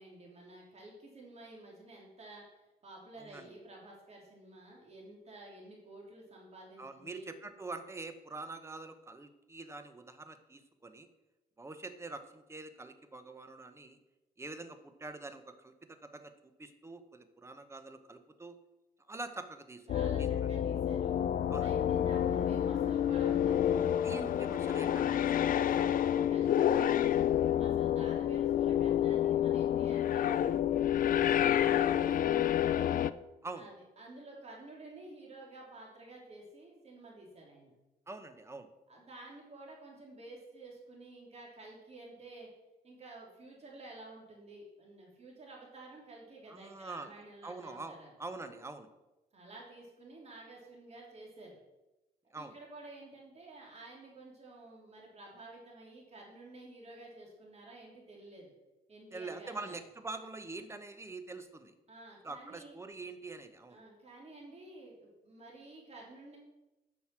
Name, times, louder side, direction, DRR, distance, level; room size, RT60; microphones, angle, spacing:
voice 1, 0.0-2.4 2.8-7.3 19.9-21.3 21.6-23.6 25.0-30.5 30.9-33.0 33.6-37.7 38.9-42.5 42.8-48.1 49.3-51.6 52.3-58.5 58.9-59.7 61.9-62.8 63.7-66.4, right 2 dB, 40° right, -2 dB, 3.3 m, -51 dB
voice 2, 3.2-3.5 6.8-11.1 11.6-14.0 14.4-15.7 16.0-16.3 16.6-18.5 19.1-19.8 20.2-20.5 21.5-21.7 24.0-25.5 33.4-33.7 38.1-38.7 46.5-47.1 47.4-48.9 52.3-52.5 59.1-61.7 62.2-63.8, right 3 dB, 15° right, 9 dB, 0.9 m, -45 dB
sound 1, 19.9-33.1, left 10 dB, 55° left, 0.4 m, -29 dB
9.5 x 6.2 x 6.1 m, 0.99 s
cardioid pair, 120°, 17 cm